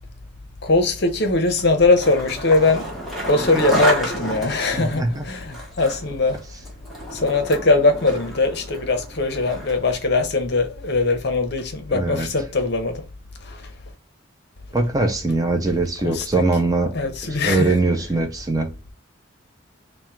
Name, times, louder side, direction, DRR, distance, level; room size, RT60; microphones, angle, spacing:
voice 1, 0.6-2.9 3.3-6.4 7.1-13.0 13.4-13.7 16.0-16.4 16.9-17.8, left 3 dB, 50° left, 0.7 m, -21 dB
Skateboard, 1.6-9.9, equal, ahead, 0.9 m, -30 dB
voice 2, 4.7-5.2 11.9-12.3 14.7-16.9 17.3-18.7, right 2 dB, 15° right, 0.4 m, -21 dB
3.5 x 2.1 x 4.2 m
head